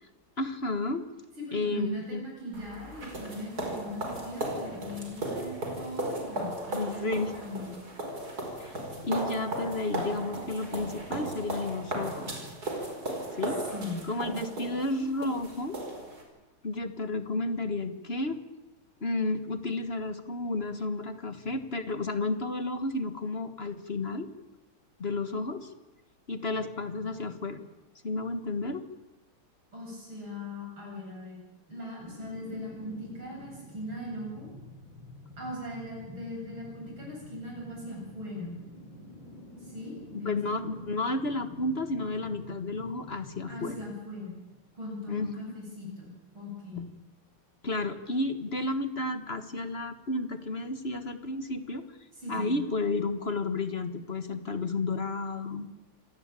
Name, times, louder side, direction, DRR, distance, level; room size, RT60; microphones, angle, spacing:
voice 1, 0.4-1.0 1.5-2.2 6.4-7.3 8.6-12.4 13.4-13.6 14.0-15.8 16.6-18.4 19.0-24.3 25.0-25.7 26.3-27.7 28.0-28.8 40.2-43.8 45.1-45.3 46.8-46.9 47.6-51.8 52.3-55.7, left 2 dB, 30° left, 9 dB, 1.5 m, -32 dB
voice 2, 1.4-7.8 13.7-14.4 29.7-34.5 35.4-38.6 39.6-40.8 43.5-44.4 44.7-46.1 46.3-46.9 52.1-52.6, left 1 dB, 65° right, -2 dB, 9.0 m, -40 dB
sound 1, 2.5-16.2, right 1 dB, 45° right, 5.4 m, -36 dB
sound 2, 32.0-45.0 45.4-45.5, left 1 dB, 60° left, 6.0 m, -49 dB
27.0 x 18.0 x 9.0 m, 1.0 s
omnidirectional pair, 2.3 m